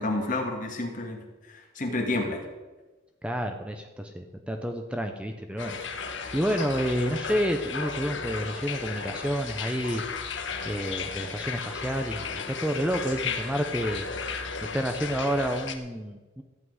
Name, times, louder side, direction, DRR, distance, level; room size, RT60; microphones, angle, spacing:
voice 1, 0.0-2.4, left 2 dB, 40° left, 2 dB, 2.1 m, -30 dB
voice 2, 3.2-10.0 10.6-14.1 14.7-16.4, equal, 5° right, 5 dB, 0.8 m, -29 dB
sound 1, 5.6-15.8, left 5 dB, 70° left, 1.3 m, -35 dB
14.0 x 5.9 x 9.5 m, 1.2 s
head